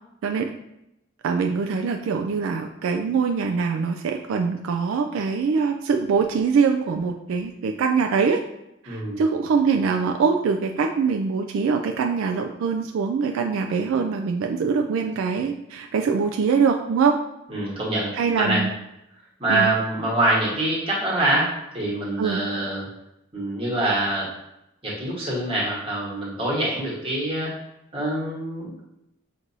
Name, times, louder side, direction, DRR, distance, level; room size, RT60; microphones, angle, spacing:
voice 1, 1.2-8.4 8.8-17.1 18.1-18.7 19.5-19.7 22.2-22.4, right 5 dB, 75° right, 4 dB, 0.3 m, -23 dB
voice 2, 8.9-9.2 17.5-18.6 19.4-22.9 23.3-24.3 24.8-27.6 27.9-28.9, right 2 dB, 25° right, -6 dB, 1.3 m, -25 dB
6.0 x 2.6 x 2.7 m, 0.84 s
head